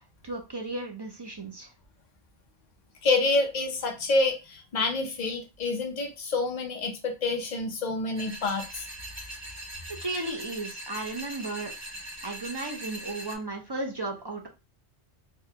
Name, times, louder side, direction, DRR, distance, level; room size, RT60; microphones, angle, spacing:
voice 1, 0.2-1.7 10.0-11.7 12.2-14.5, right 2 dB, 35° right, 1 dB, 0.4 m, -34 dB
voice 2, 3.0-8.9, left 3 dB, 45° left, 3 dB, 0.7 m, -27 dB
sound 1, 8.2-13.4, right 1 dB, 15° right, 1.1 m, -41 dB
3.4 x 2.2 x 2.8 m, 0.27 s
omnidirectional pair, 1.1 m